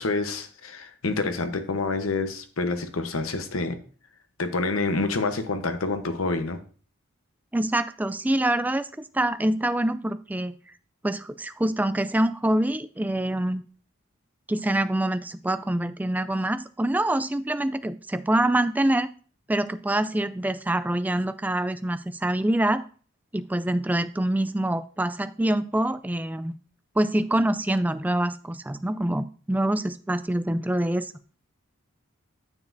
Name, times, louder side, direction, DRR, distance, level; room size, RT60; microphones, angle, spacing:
voice 1, 0.0-3.8 4.4-6.6, left 3 dB, 85° left, 8 dB, 1.0 m, -27 dB
voice 2, 7.5-8.9 9.1-10.5 11.0-13.6 14.5-19.1 19.5-22.8 23.3-26.6 27.0-31.1, right 1 dB, 10° right, 12 dB, 0.3 m, -25 dB
9.5 x 7.1 x 2.7 m, 0.40 s
head